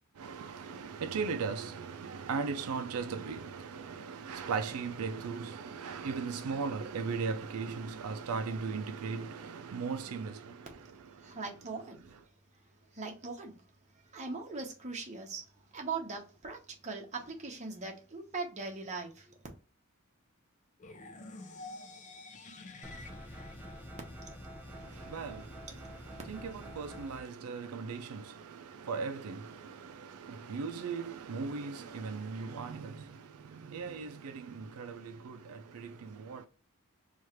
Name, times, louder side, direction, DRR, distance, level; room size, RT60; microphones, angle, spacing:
voice 1, 0.2-10.7 25.1-25.4 26.3-33.2 33.5-36.4, right 5 dB, 85° right, 0.4 m, -38 dB
voice 2, 11.1-12.0 12.9-13.6 14.1-15.4 15.7-16.6 16.8-19.3, right 4 dB, 30° right, 0.9 m, -40 dB
sound 1, 20.8-24.8, left 2 dB, 35° left, 0.5 m, -49 dB
sound 2, 22.8-27.2, equal, 10° right, 0.6 m, -47 dB
3.2 x 2.4 x 4.3 m
head